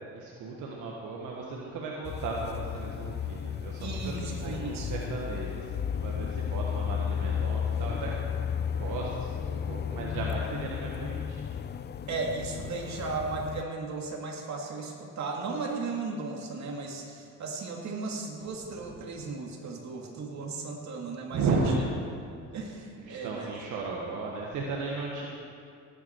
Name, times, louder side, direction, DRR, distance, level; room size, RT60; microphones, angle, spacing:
voice 1, 0.1-8.2 8.7-11.4 21.3-21.9 23.0-25.3, right 3 dB, 85° right, -2 dB, 1.5 m, -35 dB
sound 1, 2.0-13.6, left 8 dB, 35° left, 0.4 m, -33 dB
voice 2, 3.8-4.9 12.1-21.6 22.5-23.5, right 3 dB, 65° right, 0 dB, 2.5 m, -36 dB
18.5 x 9.7 x 4.7 m, 2.4 s
cardioid pair, 90°, 30 cm